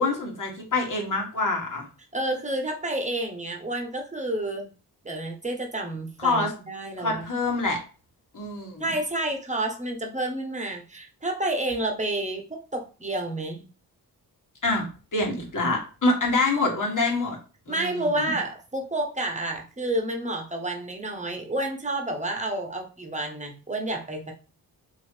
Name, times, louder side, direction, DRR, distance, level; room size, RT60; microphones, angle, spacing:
voice 1, 0.0-1.9 6.2-6.5 7.0-7.8 8.3-8.9 14.6-14.9 15.1-17.4 17.7-18.3, left 2 dB, 50° left, 0 dB, 1.8 m, -26 dB
voice 2, 2.1-4.7 5.0-7.2 8.8-13.6 17.7-24.3, right 1 dB, 15° right, 2 dB, 1.3 m, -30 dB
3.1 x 3.0 x 4.5 m, 0.34 s
supercardioid pair, 45°, 41 cm